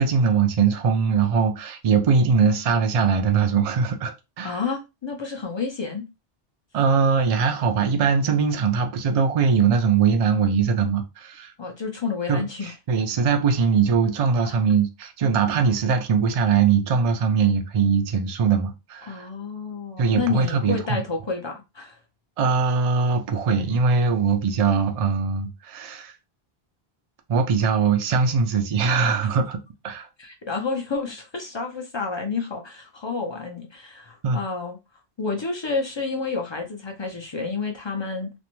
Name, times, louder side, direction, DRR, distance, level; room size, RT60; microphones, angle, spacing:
voice 1, 0.0-4.6 6.7-11.5 12.3-19.3 20.0-21.0 22.4-26.2 27.3-29.6 29.8-30.1 34.2-34.4, right 5 dB, 60° right, 0.4 m, -21 dB
voice 2, 4.4-6.1 11.6-12.7 19.1-22.0 30.2-34.8 35.2-38.3, left 4 dB, 45° left, 0.4 m, -30 dB
2.5 x 2.1 x 2.9 m
omnidirectional pair, 1.1 m